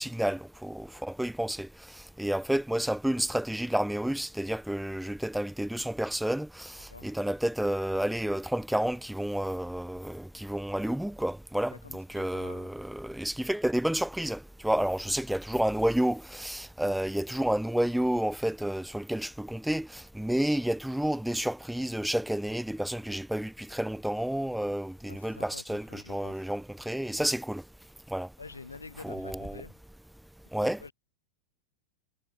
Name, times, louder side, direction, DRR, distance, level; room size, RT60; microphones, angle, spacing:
voice 1, 0.0-1.7 2.2-27.6 28.1-28.3 29.0-29.6 30.5-30.8, right 1 dB, ahead, 1.8 m, -30 dB
voice 2, 11.7-12.7 25.1-26.4 28.4-29.8 30.6-30.9, left 4 dB, 80° left, 4.9 m, -47 dB
figure-of-eight pair, 90°, 0 cm